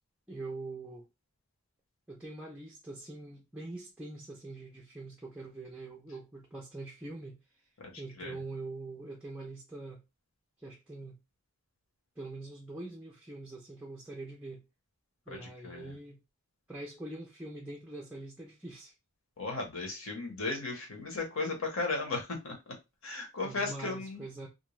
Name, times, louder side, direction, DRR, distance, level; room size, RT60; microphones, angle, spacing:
voice 1, 0.3-1.1 2.1-7.4 8.0-10.0 10.6-11.2 12.2-14.6 15.3-16.2 16.7-18.9 23.4-24.5, right 2 dB, 5° right, 0.4 m, -44 dB
voice 2, 19.4-22.6 23.0-24.2, left 3 dB, 65° left, 1.0 m, -35 dB
2.5 x 2.2 x 3.0 m
head